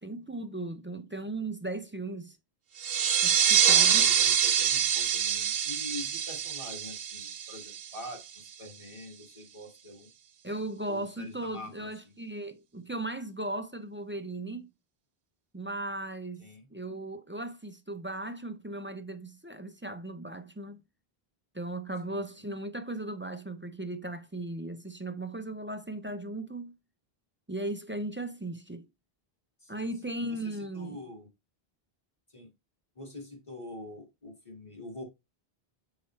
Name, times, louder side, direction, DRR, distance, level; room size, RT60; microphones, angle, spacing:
voice 1, 0.0-2.4 3.2-4.1 10.4-14.7 15.5-20.8 21.5-26.7 27.5-28.9 29.7-31.0, right 2 dB, 20° right, 0.4 m, -37 dB
sound 1, 2.8-8.1, right 8 dB, 70° right, 0.9 m, -25 dB
voice 2, 3.9-10.1 10.9-12.1 16.4-16.7 22.0-22.5 29.6-31.3 32.3-32.5 33.0-35.0, left 1 dB, 30° left, 2.0 m, -45 dB
6.9 x 4.8 x 3.1 m
omnidirectional pair, 1.0 m